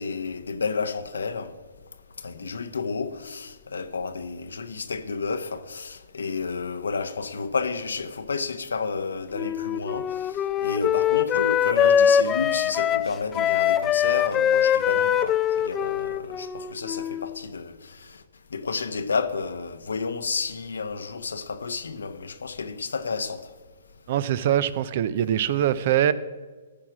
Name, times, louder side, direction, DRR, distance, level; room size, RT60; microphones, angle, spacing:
voice 1, 0.0-1.5 2.2-10.4 10.6-18.0 18.5-23.4, left 4 dB, 85° left, 0.9 m, -31 dB
Wind instrument woodwind instrument, 9.3-17.4, left 9 dB, 20° left, 0.4 m, -23 dB
voice 2, 24.1-26.1, right 11 dB, 50° right, 0.5 m, -23 dB
13.5 x 4.9 x 6.0 m
hypercardioid pair, 135°, 0 cm